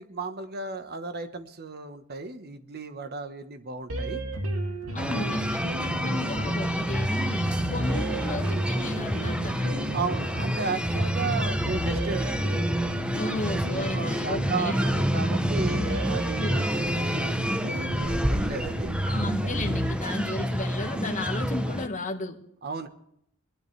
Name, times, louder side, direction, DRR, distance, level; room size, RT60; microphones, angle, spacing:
voice 1, 0.0-4.2 4.9-5.3 9.9-12.6 13.9-19.0 22.6-22.9, right 4 dB, 50° right, 9 dB, 1.2 m, -35 dB
sound 1, 3.9-19.9, right 1 dB, 85° right, 2.3 m, -32 dB
voice 2, 4.9-9.7 13.2-14.8 16.4-16.6 19.1-22.4, left 2 dB, 35° left, 4 dB, 1.5 m, -34 dB
sound 2, 5.0-21.9, equal, 5° right, 0.8 m, -29 dB
21.0 x 12.0 x 3.3 m, 0.71 s
head